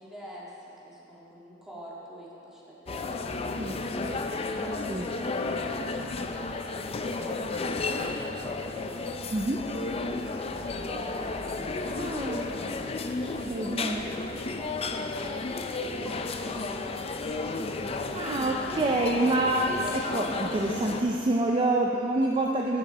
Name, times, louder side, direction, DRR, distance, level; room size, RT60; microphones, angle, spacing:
voice 1, 0.0-3.8 4.5-6.6 7.1-11.8 12.2-12.6 13.2-15.7 16.0-17.6, equal, ahead, -7 dB, 2.0 m, -47 dB
sound 1, 2.9-21.0, left 3 dB, 30° left, 0.4 m, -33 dB
voice 2, 3.6-4.1 4.9-5.1 9.3-9.6 11.7-12.5 13.5-14.1 18.1-22.8, right 2 dB, 30° right, 0 dB, 0.5 m, -27 dB
15.0 x 6.4 x 4.1 m, 2.9 s
head